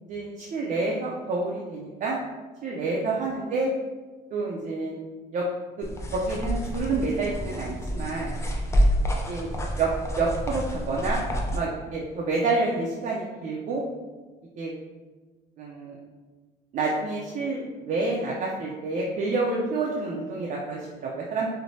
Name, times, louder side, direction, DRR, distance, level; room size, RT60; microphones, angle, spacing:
voice 1, 0.1-2.2 2.6-3.7 4.3-5.0 5.3-5.5 5.8-5.9 6.1-8.3 9.3-9.5 9.8-9.9 10.2-11.2 11.5-13.8 14.6-14.7 15.6-16.0 16.7-21.5, right 3 dB, 50° right, -3 dB, 0.4 m, -28 dB
sound 1, 5.8-11.6, equal, 15° left, 0.4 m, -28 dB
3.1 x 2.1 x 2.7 m, 1.3 s
cardioid pair, 110°, 17 cm